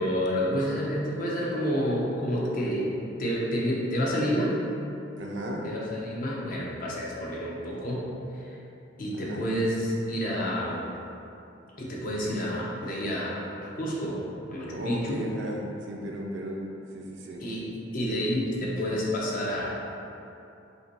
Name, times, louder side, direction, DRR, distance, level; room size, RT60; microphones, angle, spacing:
voice 1, 0.0-2.9 3.2-4.5 5.6-8.1 9.0-10.8 11.8-13.4 13.8-14.2 14.5-15.2 17.4-17.7 17.9-19.7, equal, 50° left, -4 dB, 0.7 m, -29 dB
voice 2, 5.2-5.7 9.1-9.5 14.7-16.6 16.9-17.5, equal, 75° right, 0 dB, 0.5 m, -35 dB
5.4 x 2.2 x 2.9 m, 2.8 s
head